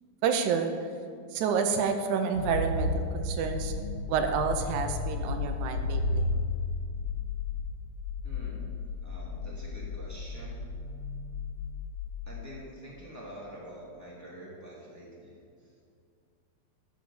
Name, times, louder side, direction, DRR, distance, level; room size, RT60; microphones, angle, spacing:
voice 1, 0.2-0.7 1.3-3.8 4.1-6.3, right 6 dB, 85° right, 6 dB, 2.1 m, -29 dB
sound 1, 2.3-12.5, left 3 dB, 60° left, 1.7 m, -33 dB
voice 2, 8.2-8.8 9.0-10.6 12.2-15.9, equal, 5° left, -6 dB, 2.0 m, -46 dB
12.0 x 6.2 x 7.2 m, 2.3 s
omnidirectional pair, 3.5 m